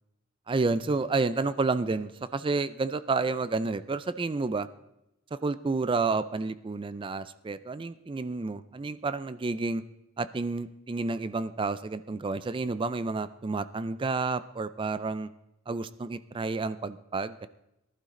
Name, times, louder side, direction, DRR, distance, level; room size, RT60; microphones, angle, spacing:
voice 1, 0.5-4.7 5.3-9.8 10.2-15.3 15.7-17.5, right 3 dB, 25° right, 15 dB, 0.4 m, -30 dB
18.5 x 11.5 x 3.8 m, 0.88 s
head